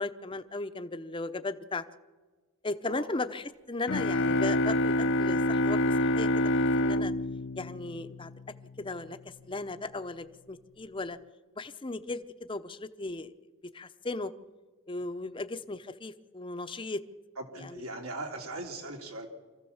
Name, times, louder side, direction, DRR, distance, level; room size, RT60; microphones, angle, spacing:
voice 1, 0.0-1.8 2.6-7.1 7.6-8.3 8.8-11.2 11.6-13.3 13.6-14.3 14.9-17.0 17.5-17.8, left 2 dB, 25° left, 11 dB, 0.7 m, -36 dB
sound 1, 3.9-8.6, left 1 dB, 55° left, 0.7 m, -27 dB
voice 2, 17.4-19.3, right 2 dB, 80° right, 2 dB, 3.2 m, -39 dB
25.5 x 15.0 x 7.2 m, 1.3 s
head